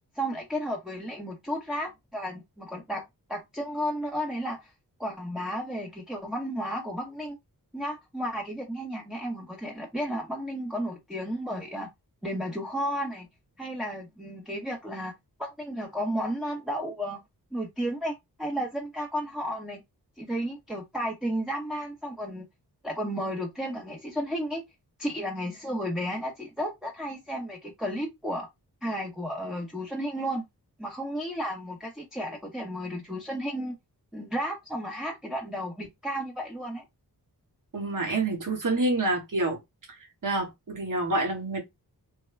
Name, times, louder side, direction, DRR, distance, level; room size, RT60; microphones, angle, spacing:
voice 1, 0.1-4.7 5.0-7.4 7.7-11.9 12.2-13.3 13.6-15.1 15.4-17.2 17.5-19.8 20.2-22.5 22.8-24.6 25.0-28.5 28.8-30.4 30.8-33.8 34.1-36.8, equal, ahead, 0.8 m, -33 dB
voice 2, 37.7-39.6 40.2-41.6, right 2 dB, 55° right, 1.4 m, -27 dB
3.3 x 2.1 x 3.1 m
wide cardioid pair, 90°, 39 cm